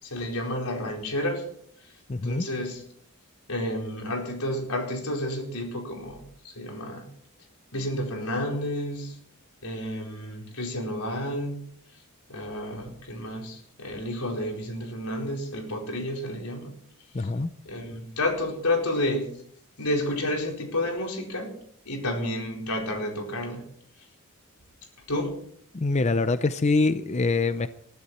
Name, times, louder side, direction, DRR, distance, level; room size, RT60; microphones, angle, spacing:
voice 1, 0.0-1.4 2.2-2.8 3.5-7.1 7.7-9.1 9.6-11.6 12.3-16.7 17.6-19.3 19.8-21.6 21.8-23.6 25.1-25.3, left 1 dB, 90° left, 4.5 m, -30 dB
voice 2, 2.1-2.4 17.1-17.5 25.7-27.7, left 3 dB, 30° left, 0.5 m, -24 dB
21.0 x 13.0 x 4.3 m
head